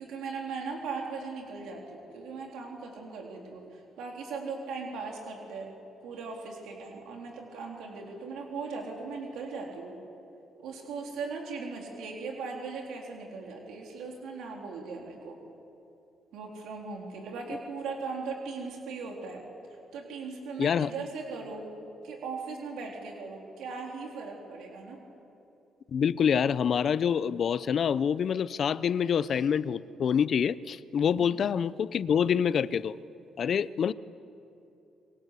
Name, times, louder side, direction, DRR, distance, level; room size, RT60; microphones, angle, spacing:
voice 1, 0.0-5.7 6.0-10.0 10.6-15.4 16.3-19.5 19.9-21.7 22.0-25.0 31.2-31.5, right 4 dB, 85° right, 0 dB, 3.8 m, -38 dB
voice 2, 20.6-20.9 25.9-32.9 33.4-33.9, left 7 dB, 55° left, 17 dB, 0.7 m, -26 dB
28.0 x 22.5 x 8.4 m, 2.8 s
cardioid pair, 90°, 0 cm